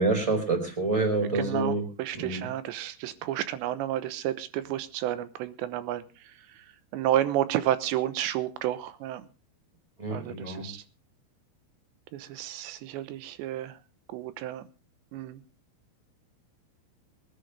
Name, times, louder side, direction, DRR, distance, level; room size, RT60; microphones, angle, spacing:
voice 1, 0.0-1.8 2.2-2.5 10.0-10.7, right 2 dB, 5° right, 4 dB, 3.5 m, -27 dB
voice 2, 1.3-6.0 6.9-9.2 10.1-10.8 12.1-13.8 14.1-14.7 15.1-15.4, right 12 dB, 75° right, 13 dB, 3.0 m, -31 dB
23.5 x 10.5 x 3.3 m, 0.32 s
omnidirectional pair, 5.5 m